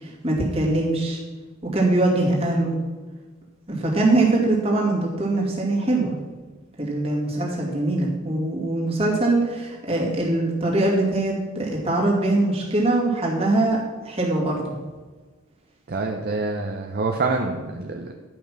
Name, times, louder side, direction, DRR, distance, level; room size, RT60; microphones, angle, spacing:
voice 1, 0.2-1.2 1.7-2.8 3.7-6.1 6.8-14.6, right 2 dB, 30° right, -3 dB, 2.4 m, -22 dB
voice 2, 15.9-18.1, right 3 dB, 45° right, 3 dB, 0.7 m, -26 dB
11.0 x 5.6 x 6.0 m, 1.3 s
head